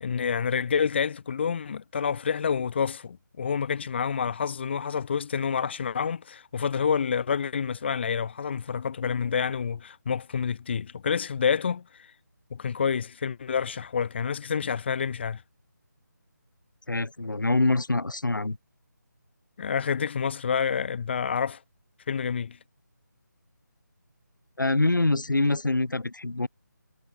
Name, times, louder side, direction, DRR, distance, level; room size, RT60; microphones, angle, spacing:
voice 1, 0.0-11.8 12.5-15.4 19.6-21.6 22.1-22.6, left 6 dB, 35° left, 0.8 m, -28 dB
voice 2, 16.9-18.6 24.6-26.5, left 2 dB, 80° left, 3.4 m, -25 dB
figure-of-eight pair, 160°, 10 cm